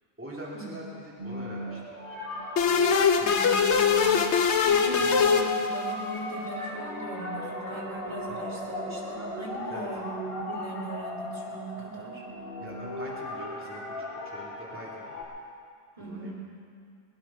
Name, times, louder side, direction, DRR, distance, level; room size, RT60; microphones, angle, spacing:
voice 1, 0.2-2.0 9.7-9.9 12.6-15.1 16.0-16.3, right 1 dB, 10° right, -6 dB, 2.8 m, -43 dB
sound 1, 0.9-15.2, left 1 dB, 50° left, 3.9 m, -37 dB
sound 2, 2.6-6.1, left 6 dB, 70° left, 1.1 m, -23 dB
voice 2, 3.2-12.2 16.0-16.3, right 1 dB, 30° right, -3 dB, 3.3 m, -39 dB
21.5 x 10.5 x 5.8 m, 2.2 s
omnidirectional pair, 1.3 m